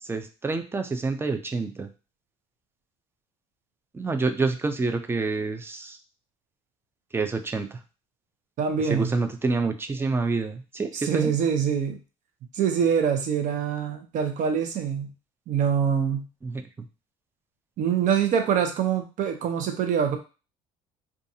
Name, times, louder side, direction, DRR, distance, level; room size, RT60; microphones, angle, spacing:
voice 1, 0.0-1.9 3.9-6.0 7.1-7.8 8.8-11.3 16.4-16.6, right 3 dB, 15° right, 7 dB, 0.4 m, -28 dB
voice 2, 8.6-9.1 11.0-12.0 12.5-15.1 15.5-16.3 17.8-20.2, right 7 dB, 55° right, 6 dB, 0.7 m, -24 dB
2.5 x 2.4 x 2.7 m, 0.32 s
supercardioid pair, 95°, 15 cm